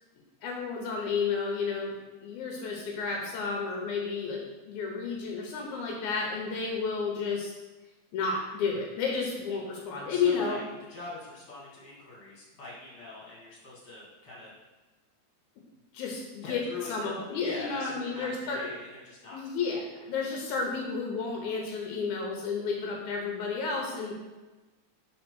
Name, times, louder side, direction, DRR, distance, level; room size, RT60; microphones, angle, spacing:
voice 1, 0.4-4.4 4.7-7.5 8.1-10.6 15.9-16.6 16.9-18.7 19.3-24.2, left 5 dB, 85° left, 0 dB, 2.4 m, -31 dB
voice 2, 10.1-10.6 10.9-14.5 16.4-19.4, left 3 dB, 45° left, -6 dB, 3.0 m, -42 dB
5.3 x 4.3 x 6.1 m, 1.2 s
omnidirectional pair, 3.4 m